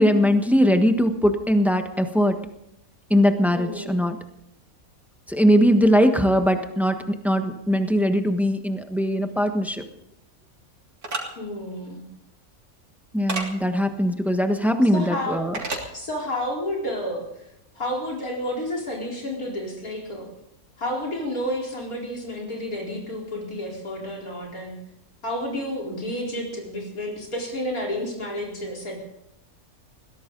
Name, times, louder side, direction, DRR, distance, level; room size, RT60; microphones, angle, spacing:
voice 1, 0.0-2.4 3.1-4.2 5.3-9.8 13.1-15.5, equal, ahead, 6 dB, 1.2 m, -20 dB
voice 2, 3.5-4.1 11.3-12.0 14.8-15.4 15.9-17.5 17.7-20.3 20.8-24.8 25.2-29.0, left 1 dB, 75° left, -1 dB, 4.7 m, -30 dB
sound 1, 11.0-11.2 13.3-13.5 15.5-15.9, right 2 dB, 85° right, 3.5 m, -28 dB
21.0 x 16.5 x 4.0 m, 0.83 s
omnidirectional pair, 1.5 m